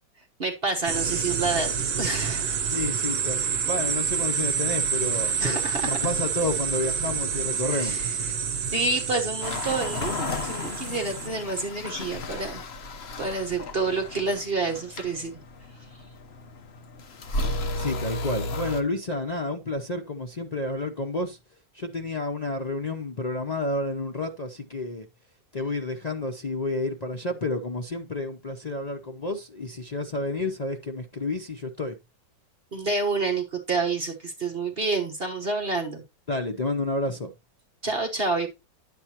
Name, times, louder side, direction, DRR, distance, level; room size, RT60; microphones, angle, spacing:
voice 1, 0.4-1.7 2.0-2.6 5.4-6.0 7.7-8.1 8.7-12.6 13.2-15.3 32.7-36.0 37.8-38.5, right 3 dB, 35° right, 1.2 m, -28 dB
sound 1, 0.9-11.3, right 7 dB, 60° right, 1.3 m, -28 dB
voice 2, 2.7-8.0 17.7-21.4 21.7-25.1 25.5-32.0 36.3-37.3, left 2 dB, 85° left, 0.3 m, -30 dB
Seamstress' Straight Knife Machine, 9.4-18.8, left 2 dB, 45° left, 0.9 m, -34 dB
10.0 x 7.8 x 2.9 m
omnidirectional pair, 1.9 m